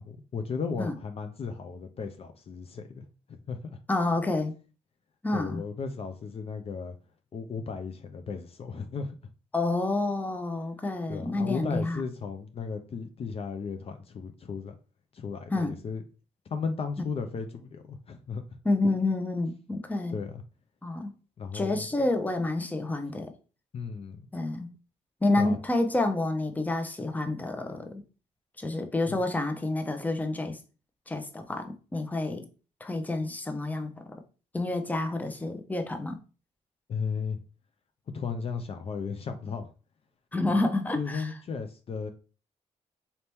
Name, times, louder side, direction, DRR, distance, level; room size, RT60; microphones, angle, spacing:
voice 1, 0.0-3.8 5.3-7.0 7.3-9.2 11.1-14.7 15.1-16.0 16.5-18.4 20.1-20.4 21.4-21.9 23.7-24.2 25.3-25.6 29.1-29.2 36.9-37.4 38.1-39.7 40.9-42.1, left 5 dB, 50° left, 0.5 m, -35 dB
voice 2, 3.9-4.6 5.2-5.6 9.5-12.0 15.5-15.8 18.6-20.2 20.8-21.1 21.5-23.3 24.3-24.7 25.2-28.0 28.6-30.6 31.1-32.5 32.8-34.1 34.5-36.2 40.3-41.3, left 2 dB, 10° left, 0.7 m, -29 dB
4.2 x 2.8 x 3.4 m
cardioid pair, 80°, 13 cm